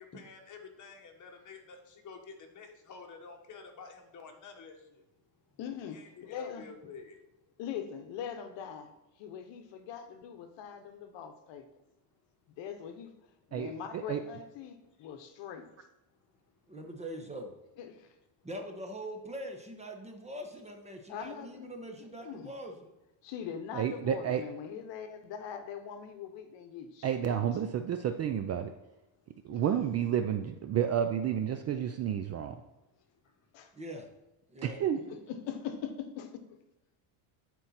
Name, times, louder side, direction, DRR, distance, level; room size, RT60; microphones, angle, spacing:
voice 1, 0.0-5.0 5.9-7.2 15.0-15.1 33.2-33.3, left 5 dB, 35° left, 1.5 m, -50 dB
voice 2, 5.6-6.7 7.6-8.9 9.2-11.6 12.6-13.1 13.5-15.7 17.8-18.1 21.1-21.7 22.2-22.5 23.2-27.4 29.5-29.6 33.5-33.7 35.1-36.1, left 8 dB, 60° left, 1.1 m, -41 dB
voice 3, 13.5-14.2 23.7-24.4 27.0-28.7 29.4-32.6 34.6-35.0, right 9 dB, 35° right, 0.4 m, -30 dB
voice 4, 16.7-17.5 18.4-22.9 33.7-34.1 34.5-34.8, right 1 dB, 15° right, 1.1 m, -42 dB
11.0 x 4.6 x 4.3 m
cardioid pair, 120°, 50 cm